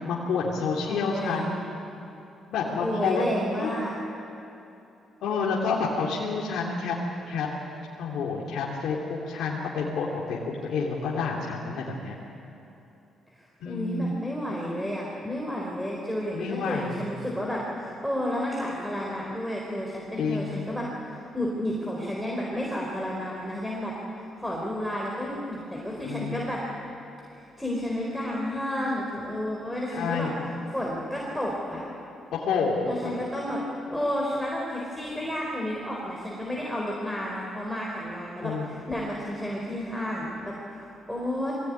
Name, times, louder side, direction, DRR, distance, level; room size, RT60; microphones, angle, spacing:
voice 1, 0.0-1.6 2.5-3.8 5.2-6.9 7.3-7.5 8.0-12.2 13.6-14.2 16.3-17.0 20.2-20.6 26.0-26.4 29.9-30.4 32.3-33.1 38.4-38.7, left 4 dB, 75° left, -4 dB, 3.2 m, -29 dB
voice 2, 0.9-1.4 2.8-3.9 13.4-23.9 24.4-26.6 27.6-30.3 30.7-31.8 32.8-33.6 33.9-41.5, equal, ahead, -3 dB, 4.4 m, -31 dB
23.5 x 17.0 x 9.8 m, 2.8 s
cardioid pair, 90°, 0 cm